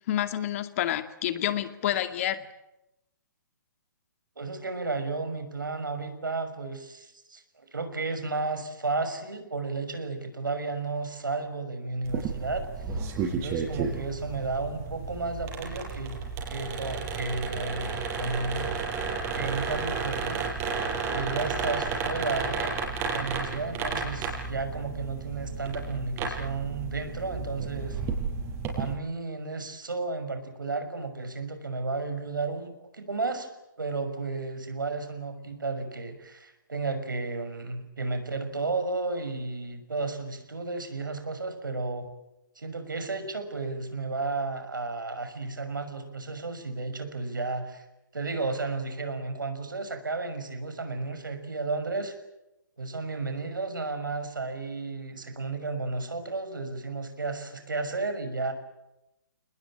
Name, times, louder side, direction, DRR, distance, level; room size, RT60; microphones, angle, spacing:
voice 1, 0.1-2.4, left 12 dB, 45° left, 9 dB, 2.3 m, -28 dB
voice 2, 4.4-12.7 13.3-16.2 16.5-18.8 19.1-20.4 21.1-22.8 23.1-28.0 28.7-33.5 33.8-42.1 42.6-47.8 48.1-52.1 52.8-58.5, right 3 dB, 85° right, 8 dB, 6.1 m, -33 dB
sound 1, 12.0-28.9, right 5 dB, 25° right, 7.0 m, -32 dB
28.5 x 20.5 x 8.9 m, 0.91 s
figure-of-eight pair, 130°, 11 cm